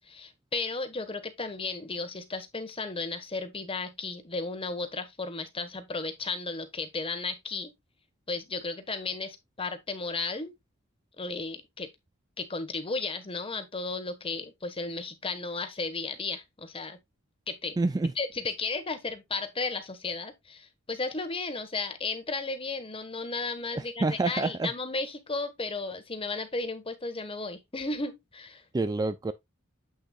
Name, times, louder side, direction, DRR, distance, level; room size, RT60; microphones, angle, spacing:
voice 1, 0.0-7.7 8.3-10.5 11.2-11.9 12.4-17.0 17.5-17.8 18.2-28.6, left 3 dB, 25° left, 1.3 m, -34 dB
voice 2, 17.8-18.1 23.7-24.7 28.7-29.3, right 3 dB, 20° right, 0.3 m, -27 dB
8.0 x 6.4 x 2.3 m
head